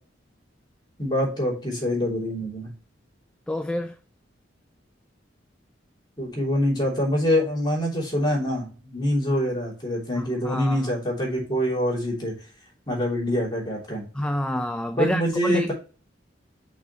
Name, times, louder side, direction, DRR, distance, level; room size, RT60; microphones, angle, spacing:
voice 1, 1.0-2.7 6.2-12.3 12.9-14.1 15.0-15.7, equal, 25° left, 3.1 m, -25 dB
voice 2, 3.5-4.0 10.2-10.9 14.1-15.7, left 1 dB, 5° left, 0.3 m, -28 dB
6.1 x 5.0 x 3.1 m
head